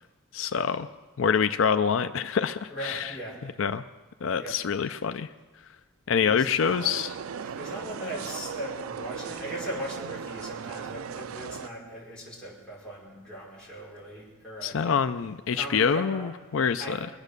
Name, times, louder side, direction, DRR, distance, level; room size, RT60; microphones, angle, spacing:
voice 1, 0.3-0.9 1.2-3.1 3.6-3.8 4.2-5.3 6.1-7.2 14.6-17.0, left 6 dB, 70° left, 11 dB, 0.4 m, -26 dB
voice 2, 2.7-3.5 4.4-4.6 6.3-6.5 7.4-14.9 15.5-16.3 16.8-17.0, equal, 5° left, -7 dB, 5.1 m, -38 dB
sound 1, 6.6-11.7, right 7 dB, 85° right, 0.4 m, -37 dB
23.5 x 8.2 x 6.7 m, 1.3 s
head